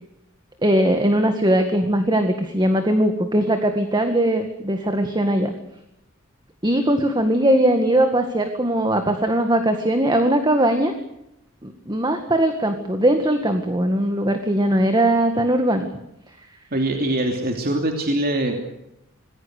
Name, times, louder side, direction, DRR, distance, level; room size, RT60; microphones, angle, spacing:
voice 1, 0.6-5.5 6.6-10.9 11.6-15.9, right 1 dB, 20° right, 6 dB, 1.9 m, -20 dB
voice 2, 16.7-18.6, right 1 dB, 50° right, 3 dB, 3.0 m, -23 dB
26.5 x 20.5 x 6.7 m, 0.84 s
head